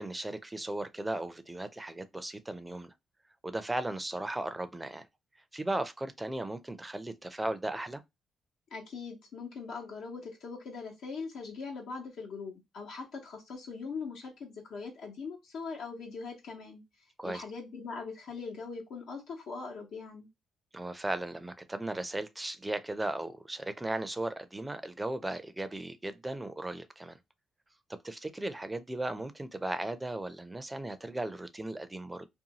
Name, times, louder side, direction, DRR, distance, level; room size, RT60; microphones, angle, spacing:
voice 1, 0.0-2.9 3.4-5.1 5.5-8.0 17.2-17.4 20.7-27.2 27.9-32.3, right 2 dB, 15° right, 0.4 m, -36 dB
voice 2, 8.7-16.8 17.2-20.3, left 4 dB, 75° left, 1.0 m, -41 dB
2.6 x 2.3 x 2.8 m
cardioid pair, 90°, 0 cm